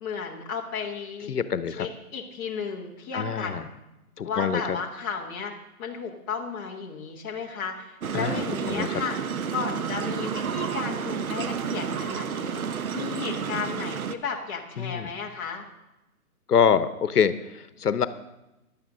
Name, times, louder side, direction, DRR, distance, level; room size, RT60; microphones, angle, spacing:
voice 1, 0.0-1.3 1.8-3.7 4.2-5.5 5.8-9.2 9.5-12.6 12.9-15.7, left 5 dB, 15° left, -1 dB, 1.0 m, -34 dB
voice 2, 1.3-1.9 3.1-3.6 4.2-4.8 8.1-8.9 14.8-15.1 16.5-18.1, left 7 dB, 85° left, 13 dB, 1.0 m, -25 dB
sound 1, 8.0-14.2, right 7 dB, 65° right, 1.0 m, -30 dB
16.0 x 11.5 x 3.8 m, 0.96 s
hypercardioid pair, 160°, 45 cm